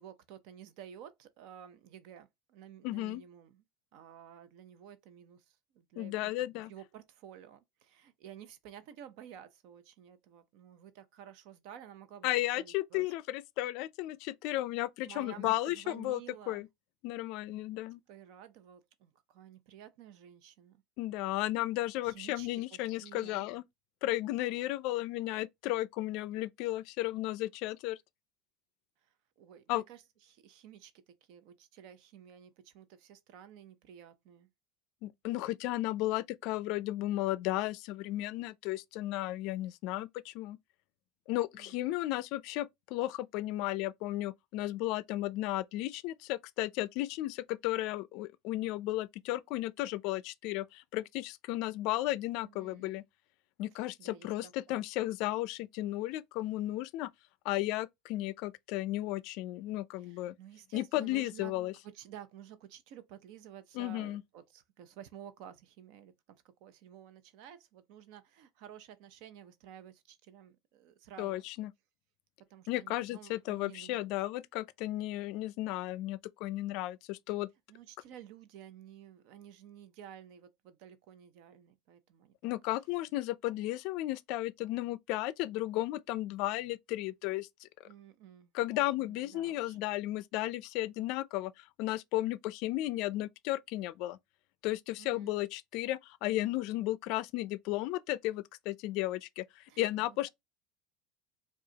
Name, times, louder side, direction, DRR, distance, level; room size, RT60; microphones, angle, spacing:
voice 1, 0.0-3.6 3.9-12.3 12.5-13.1 15.0-16.6 18.1-20.8 22.0-23.4 29.0-34.5 41.5-41.9 52.4-53.0 53.7-54.8 60.0-61.5 61.8-66.1 66.6-71.4 72.5-73.9 77.7-82.5 87.8-88.5 89.0-89.8 95.0-95.3 99.7-100.3, right 10 dB, 65° right, 0.6 m, -52 dB
voice 2, 2.8-3.2 6.0-6.7 12.2-16.2 16.5-16.7 17.0-18.0 21.0-23.6 24.0-28.0 29.7-29.8 35.0-40.6 41.3-53.0 53.6-57.1 57.4-60.3 60.7-61.7 63.7-64.2 71.2-71.7 72.7-77.5 82.4-87.7 88.5-94.2 94.6-100.3, left 16 dB, 60° left, 0.4 m, -34 dB
4.8 x 2.3 x 2.8 m
supercardioid pair, 115°, 0 cm